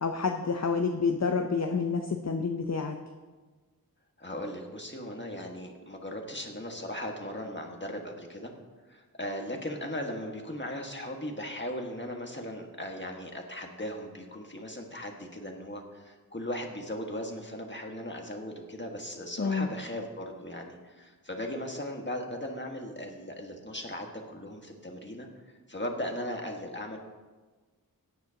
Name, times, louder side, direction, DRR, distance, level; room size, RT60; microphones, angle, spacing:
voice 1, 0.0-2.9 19.4-19.7, left 5 dB, 45° left, 4 dB, 0.7 m, -28 dB
voice 2, 4.2-8.5 8.9-27.0, left 1 dB, 30° left, 2 dB, 1.6 m, -38 dB
17.0 x 9.5 x 2.9 m, 1.3 s
wide cardioid pair, 45°, 36 cm